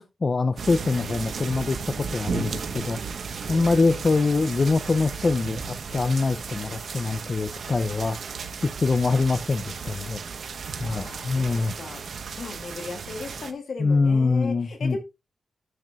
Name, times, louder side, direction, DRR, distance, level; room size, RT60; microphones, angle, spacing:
voice 1, 0.2-3.0 3.5-8.2 8.8-10.2 10.8-11.7 13.8-15.0, left 3 dB, 40° left, 0.5 m, -24 dB
sound 1, 0.6-13.5, right 5 dB, 70° right, 1.1 m, -35 dB
voice 2, 3.5-4.0 10.8-12.0 12.4-15.0, left 4 dB, 65° left, 2.2 m, -37 dB
10.5 x 8.1 x 2.4 m
wide cardioid pair, 120°, 0 cm